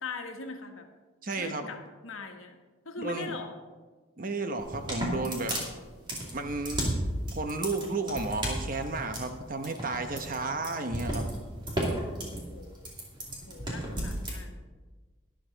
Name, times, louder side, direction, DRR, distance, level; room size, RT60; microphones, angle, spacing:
voice 1, 0.0-0.9 1.4-2.6 2.8-3.5 11.8-12.9 13.4-14.6, left 3 dB, 85° left, 5 dB, 1.3 m, -41 dB
voice 2, 1.2-1.7 3.0-3.4 4.2-5.6 6.3-6.9 7.3-11.3, right 3 dB, 40° right, 7 dB, 0.9 m, -33 dB
sound 1, 4.6-14.4, right 1 dB, 20° right, 2.3 m, -33 dB
12.5 x 11.0 x 4.0 m, 1.3 s
head